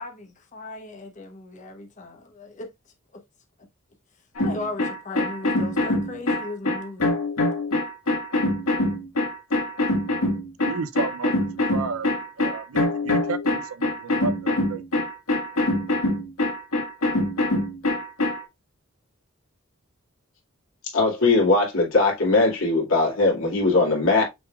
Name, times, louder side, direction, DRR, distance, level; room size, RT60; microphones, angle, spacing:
voice 1, 0.0-2.7 4.4-7.1, left 2 dB, 35° left, 0.9 m, -37 dB
sound 1, 4.4-18.4, left 2 dB, 90° left, 1.9 m, -24 dB
voice 2, 10.7-12.1 12.4-14.8, right 4 dB, 80° right, 0.6 m, -32 dB
voice 3, 20.9-24.2, left 3 dB, 70° left, 2.3 m, -20 dB
6.0 x 3.5 x 2.3 m
head